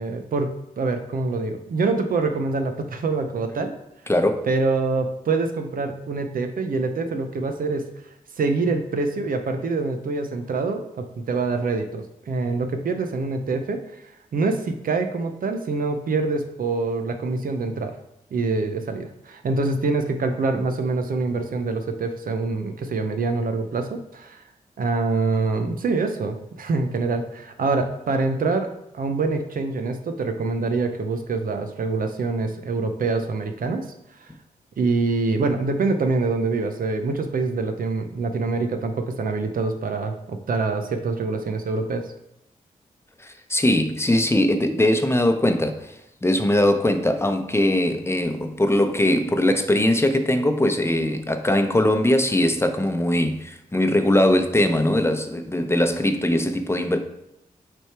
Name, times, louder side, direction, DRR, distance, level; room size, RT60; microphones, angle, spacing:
voice 1, 0.0-3.7 4.5-7.9 8.4-13.8 14.3-17.9 18.3-24.4 24.8-28.7 28.9-33.9 34.2-34.3 34.8-42.1, right 3 dB, 65° right, 6 dB, 0.7 m, -25 dB
voice 2, 4.1-4.5 43.2-45.9 46.2-57.0, left 1 dB, 15° left, 6 dB, 0.8 m, -21 dB
6.2 x 3.4 x 4.6 m, 0.84 s
supercardioid pair, 45°, 15 cm